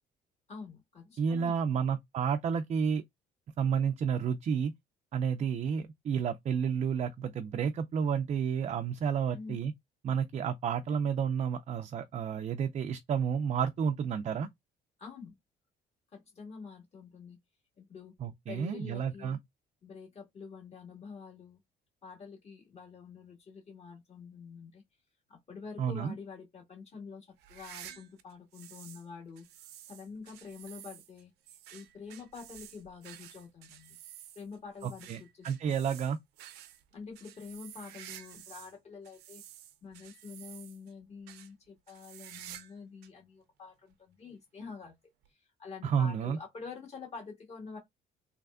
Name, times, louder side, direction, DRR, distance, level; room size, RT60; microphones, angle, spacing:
voice 1, 0.5-1.9 9.3-9.6 15.0-15.3 16.1-17.4 17.8-18.2 18.5-19.4 19.8-21.6 22.0-24.8 25.3-29.5 29.9-31.3 31.7-34.0 34.4-35.8 36.9-39.4 39.8-44.9 45.6-47.8, left 5 dB, 40° left, 1.9 m, -47 dB
voice 2, 1.2-3.0 3.6-4.7 5.1-9.7 10.0-14.5 18.2-19.4 25.8-26.1 34.8-36.2 45.8-46.4, right 7 dB, 40° right, 0.4 m, -31 dB
sound 1, 27.4-29.1 29.4-38.7 39.0-40.9 41.3-41.5 41.9-42.8 43.0-43.1 43.9-44.0 45.2-45.3, right 12 dB, 80° right, 0.6 m, -51 dB
3.3 x 3.2 x 2.4 m
cardioid pair, 110°, 17 cm